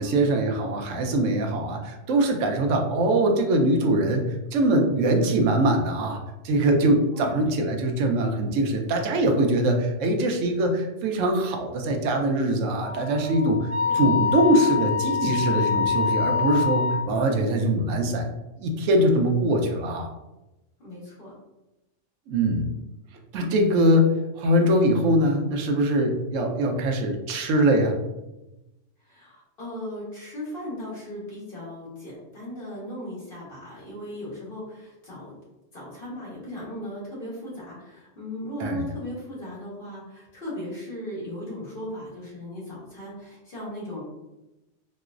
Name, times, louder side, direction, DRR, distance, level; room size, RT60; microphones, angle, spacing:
voice 1, 0.0-6.2 6.4-18.3 18.6-20.1 22.3-22.7 23.3-24.1 24.4-28.0 38.6-38.8, right 1 dB, 85° right, 3 dB, 0.9 m, -22 dB
Wind instrument woodwind instrument, 12.7-17.1, left 6 dB, 25° left, 1.4 m, -25 dB
voice 2, 20.8-21.3 29.1-35.3 35.7-44.0, left 1 dB, 50° left, -6 dB, 1.4 m, -37 dB
4.4 x 2.0 x 2.4 m, 0.97 s
omnidirectional pair, 1.3 m